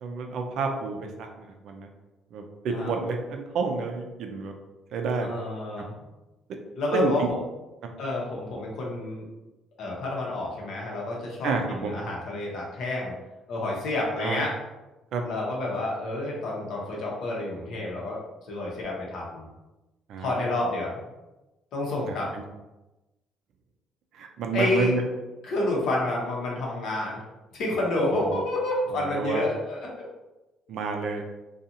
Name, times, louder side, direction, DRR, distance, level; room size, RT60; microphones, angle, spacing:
voice 1, 0.0-1.9 2.3-4.5 4.9-5.3 6.9-7.3 11.4-11.9 14.2-14.4 15.1-15.2 20.1-20.3 22.0-22.4 24.2-25.0 28.1-28.4 29.1-29.4 30.7-31.2, right 4 dB, 70° right, 4 dB, 0.4 m, -29 dB
voice 2, 5.2-5.9 6.8-7.4 8.0-9.3 9.8-13.1 13.5-14.5 15.2-18.2 18.5-19.4 20.2-21.0 21.7-22.3 24.5-24.9 25.4-27.2 27.5-29.9, left 2 dB, 70° left, -2 dB, 0.8 m, -29 dB
2.5 x 2.3 x 2.8 m, 1.1 s
cardioid pair, 115°, 0 cm